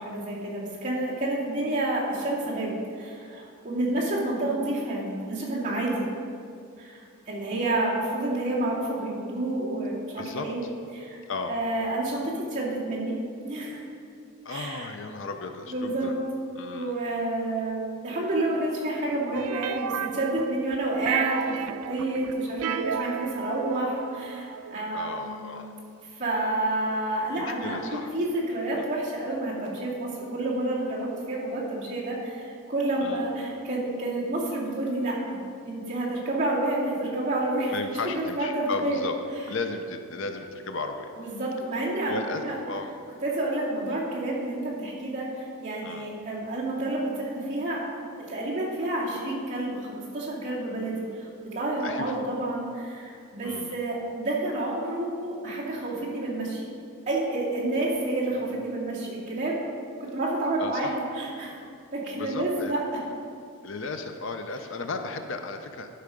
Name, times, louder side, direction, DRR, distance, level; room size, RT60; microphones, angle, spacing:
voice 1, 0.0-6.0 6.8-10.6 10.9-11.2 11.5-13.2 13.4-13.8 14.5-14.9 15.7-16.2 16.7-25.5 26.2-35.4 35.6-39.0 41.2-42.6 43.2-56.6 57.1-59.6 60.0-61.6 61.9-62.8, right 2 dB, 35° right, -7 dB, 2.5 m, -29 dB
voice 2, 10.2-10.7 11.3-11.6 14.4-16.1 16.6-16.9 24.9-25.7 27.3-28.1 28.7-28.9 33.0-33.2 37.7-39.1 39.5-41.1 42.0-42.9 45.8-46.1 51.8-52.2 53.4-53.8 60.6-60.9 62.1-62.7 63.6-65.9, left 3 dB, 60° left, 6 dB, 0.6 m, -34 dB
sound 1, 19.3-20.8 21.1-24.8, right 8 dB, 85° right, 0.3 m, -33 dB
11.5 x 5.7 x 5.1 m, 2.4 s
head